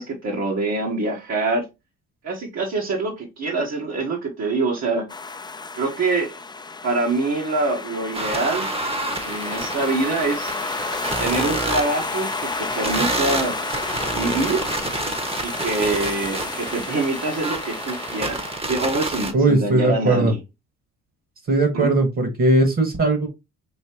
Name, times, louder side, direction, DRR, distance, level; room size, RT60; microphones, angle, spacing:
voice 1, 0.0-1.7 2.2-5.0 5.7-6.3 6.8-8.7 9.2-10.5 11.2-13.5 14.1-14.7 15.4-20.4 21.7-21.9, right 3 dB, 60° right, 1.2 m, -25 dB
sound 1, 5.1-18.6, left 4 dB, 15° left, 0.4 m, -31 dB
sound 2, 8.1-19.3, right 2 dB, 20° right, 0.9 m, -29 dB
voice 2, 19.3-20.3 21.5-23.3, right 2 dB, 45° right, 1.3 m, -19 dB
5.3 x 2.8 x 2.9 m
cardioid pair, 90°, 30 cm